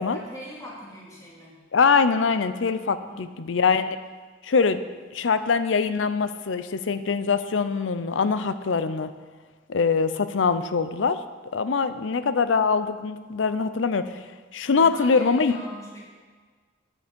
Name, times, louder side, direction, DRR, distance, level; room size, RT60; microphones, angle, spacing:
voice 1, 0.1-1.6 3.1-3.3 14.7-16.0, equal, 20° left, -5 dB, 2.2 m, -41 dB
voice 2, 1.7-4.0 4.4-4.8 5.1-9.1 9.7-11.2 11.5-14.1 14.5-15.6, left 5 dB, 80° left, 12 dB, 0.5 m, -23 dB
9.5 x 7.9 x 5.2 m, 1.5 s
head